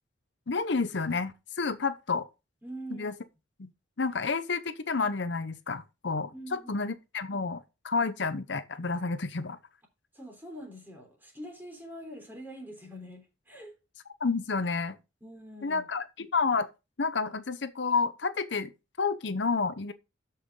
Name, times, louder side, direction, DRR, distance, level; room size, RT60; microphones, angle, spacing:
voice 1, 0.5-2.3 2.9-3.1 3.6-3.7 4.0-9.6 14.2-15.0 15.6-16.7 17.0-18.7 19.0-19.9, left 4 dB, 65° left, 0.8 m, -30 dB
voice 2, 2.6-3.2 6.3-6.9 10.1-13.8 15.2-15.9, equal, 10° right, 3.4 m, -44 dB
13.5 x 5.7 x 3.7 m
head